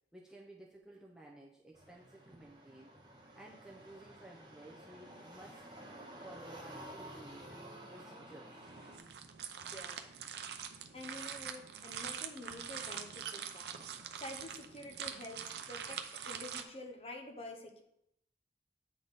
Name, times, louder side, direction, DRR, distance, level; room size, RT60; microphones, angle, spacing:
voice 1, 0.1-2.9 3.3-5.6 6.2-8.6, right 1 dB, 5° right, -3 dB, 0.5 m, -55 dB
sound 1, 1.7-9.0, right 1 dB, 25° right, 1.1 m, -52 dB
sound 2, 8.6-16.6, right 8 dB, 70° right, 0.5 m, -44 dB
voice 2, 9.7-10.0 10.9-13.8 14.2-17.8, left 1 dB, 35° left, 4 dB, 0.7 m, -48 dB
8.6 x 3.5 x 4.0 m, 0.80 s
head